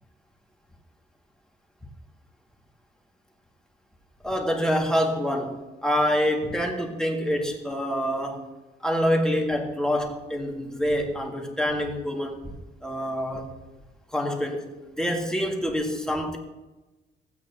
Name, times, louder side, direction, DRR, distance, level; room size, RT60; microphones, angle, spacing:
voice 1, 4.2-8.5 8.8-12.5 12.8-13.5 14.1-14.7 15.0-16.4, equal, 5° left, 1 dB, 1.9 m, -26 dB
16.0 x 8.6 x 2.8 m, 1.1 s
cardioid pair, 90°, 20 cm